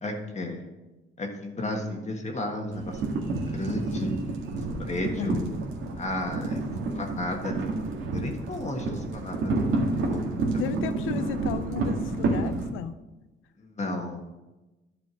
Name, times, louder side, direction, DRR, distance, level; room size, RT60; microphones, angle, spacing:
voice 1, 0.0-0.6 1.2-3.1 3.5-4.2 4.9-5.5 6.0-9.6 10.0-10.6 13.6-14.4, left 1 dB, 35° left, 2 dB, 1.6 m, -33 dB
sound 1, 2.7-12.7, right 3 dB, 80° right, 1.9 m, -29 dB
voice 2, 5.2-5.5 10.6-13.0, left 9 dB, 90° left, 12 dB, 0.6 m, -34 dB
11.0 x 5.0 x 6.2 m, 1.1 s
cardioid pair, 90°, 20 cm